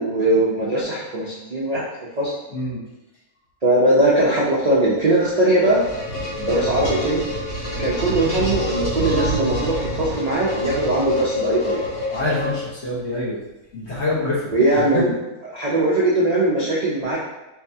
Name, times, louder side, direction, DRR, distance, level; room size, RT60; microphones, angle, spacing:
voice 1, 0.0-1.8 2.2-2.3 3.6-5.8 6.4-7.2 7.8-11.9 14.5-15.1 15.5-17.2, right 1 dB, 75° right, -7 dB, 0.3 m, -20 dB
sound 1, 5.2-13.0, left 1 dB, 90° left, 1.9 m, -27 dB
voice 2, 12.1-13.4 13.7-15.0, left 2 dB, 50° left, -7 dB, 1.3 m, -26 dB
4.6 x 2.3 x 2.7 m, 1.0 s
omnidirectional pair, 1.6 m